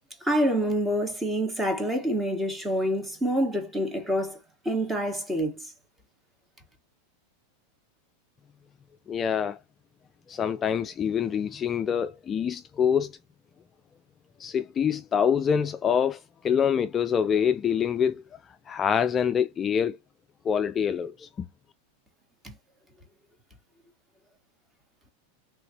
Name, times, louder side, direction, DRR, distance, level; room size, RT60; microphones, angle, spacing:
voice 1, 0.2-4.4 4.6-5.6 22.4-22.5, equal, 10° right, 1.5 m, -27 dB
voice 2, 9.1-9.6 10.3-13.2 14.4-18.2 18.7-20.0 20.4-21.5, left 7 dB, 25° left, 0.3 m, -25 dB
3.6 x 3.1 x 2.9 m
hypercardioid pair, 125°, 0 cm